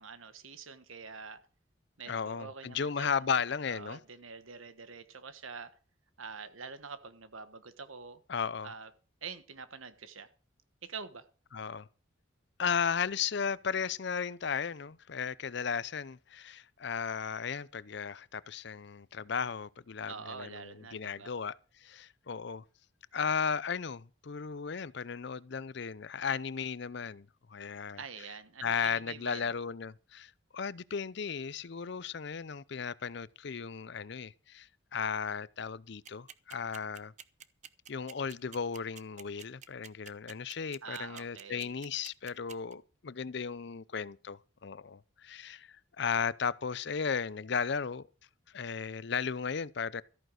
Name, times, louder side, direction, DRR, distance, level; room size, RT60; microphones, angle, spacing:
voice 1, 0.0-1.4 2.0-5.7 6.2-8.2 8.6-8.9 9.2-10.3 10.8-11.3 20.1-21.3 28.0-29.5 40.8-41.7, right 5 dB, 90° right, 1.4 m, -46 dB
voice 2, 2.1-4.0 8.3-8.7 11.5-11.9 12.6-22.6 23.1-28.0 28.6-37.1 37.9-48.1 48.5-50.0, left 6 dB, 55° left, 0.5 m, -35 dB
sound 1, 36.0-42.7, right 8 dB, 35° right, 0.7 m, -48 dB
14.0 x 9.1 x 6.4 m
head